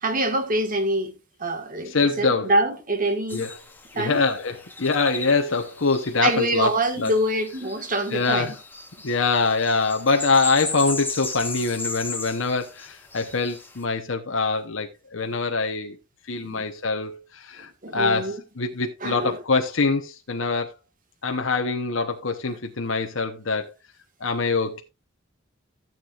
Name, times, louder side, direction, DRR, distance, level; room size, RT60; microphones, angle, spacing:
voice 1, 0.0-1.1 1.4-3.5 4.0-4.2 6.2-8.5 16.4-16.6 17.6-18.4 19.0-19.4 22.5-22.6, right 1 dB, 45° right, 1.7 m, -25 dB
voice 2, 1.9-2.5 3.3-3.5 3.9-6.7 7.0-7.1 8.1-8.5 9.0-16.0 16.3-20.7 21.2-23.7 24.2-24.8, left 4 dB, 70° left, 1.0 m, -24 dB
sound 1, 3.3-13.8, left 3 dB, 10° left, 1.2 m, -36 dB
14.5 x 7.5 x 2.5 m
head